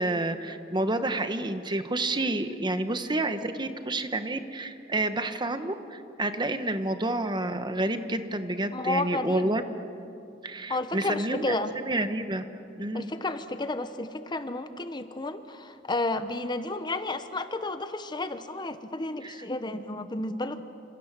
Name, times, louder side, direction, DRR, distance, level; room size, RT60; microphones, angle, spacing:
voice 1, 0.0-9.6 10.4-12.4 12.8-13.1 19.2-19.4, right 2 dB, 25° right, 9 dB, 1.2 m, -29 dB
voice 2, 8.7-9.5 10.7-11.7 12.9-20.6, left 2 dB, 25° left, 10 dB, 1.0 m, -32 dB
28.5 x 27.0 x 7.5 m, 2.6 s
head